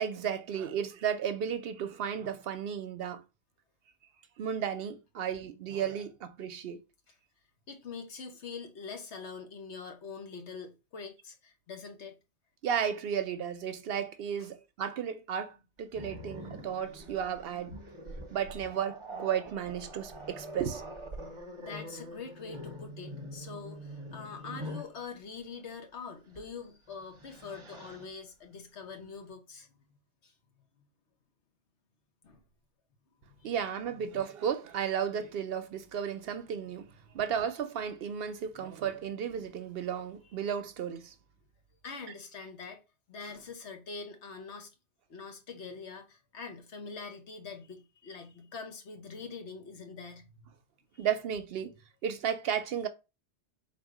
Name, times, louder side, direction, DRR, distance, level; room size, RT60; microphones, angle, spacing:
voice 1, 0.0-3.2 4.4-6.8 12.6-17.8 18.3-20.8 33.4-41.1 51.0-51.7 52.0-52.9, right 8 dB, 65° right, 0.7 m, -34 dB
voice 2, 7.7-12.1 14.4-14.5 21.6-30.0 30.2-30.3 32.2-32.4 33.2-33.5 34.0-34.3 37.0-37.2 41.8-42.8 43.1-44.7 45.1-50.5 50.9-51.1, left 5 dB, 75° left, 1.3 m, -44 dB
Growling, 15.9-25.0 26.3-26.5 26.9-28.1, equal, 30° right, 0.9 m, -44 dB
4.0 x 2.7 x 4.8 m
omnidirectional pair, 1.2 m